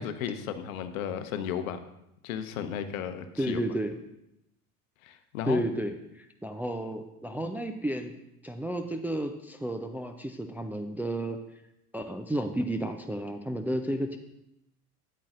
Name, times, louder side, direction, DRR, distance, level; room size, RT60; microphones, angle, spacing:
voice 1, 0.0-1.8 2.2-3.6 5.0-5.6, left 8 dB, 60° left, 9 dB, 0.9 m, -34 dB
voice 2, 3.4-4.0 5.4-8.1 8.4-11.4 11.9-14.2, right 1 dB, 5° right, 4 dB, 0.4 m, -32 dB
12.5 x 9.4 x 2.5 m, 0.85 s
figure-of-eight pair, 70°, 46 cm